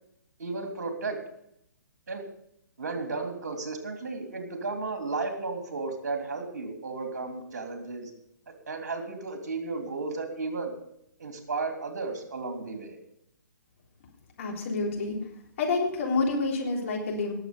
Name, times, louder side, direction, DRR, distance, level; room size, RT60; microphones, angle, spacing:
voice 1, 0.4-1.2 2.1-2.2 2.8-8.1 8.5-10.7 11.2-13.0, right 3 dB, 55° right, 4 dB, 3.2 m, -34 dB
voice 2, 14.4-15.2 15.6-17.3, left 3 dB, 45° left, -1 dB, 3.6 m, -28 dB
19.5 x 7.6 x 5.1 m, 0.73 s
figure-of-eight pair, 130°, 10 cm